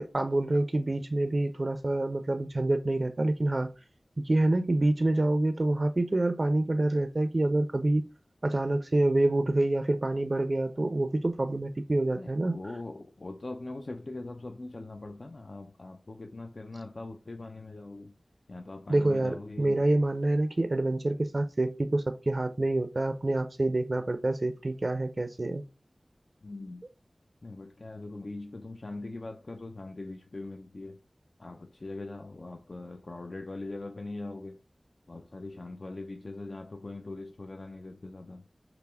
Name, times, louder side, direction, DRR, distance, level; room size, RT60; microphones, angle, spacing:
voice 1, 0.0-3.7 4.2-8.0 8.4-12.6 18.9-25.6, right 2 dB, 55° right, 0.4 m, -27 dB
voice 2, 12.1-18.1 18.5-19.8 26.4-26.8 27.4-31.0 31.4-34.6 35.1-38.5, left 2 dB, 60° left, 0.4 m, -41 dB
5.7 x 2.0 x 3.4 m
wide cardioid pair, 45°, 0 cm